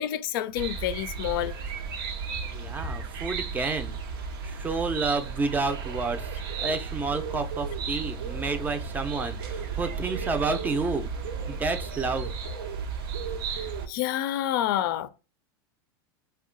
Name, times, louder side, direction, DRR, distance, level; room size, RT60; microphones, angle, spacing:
voice 1, 0.0-1.5 13.9-15.1, left 12 dB, 70° left, 0.4 m, -28 dB
sound 1, 0.5-13.9, right 5 dB, 75° right, 0.6 m, -34 dB
voice 2, 2.5-4.0 4.4-11.1 11.5-12.3, right 3 dB, 15° right, 0.5 m, -30 dB
2.6 x 2.2 x 3.7 m
supercardioid pair, 120°, 12 cm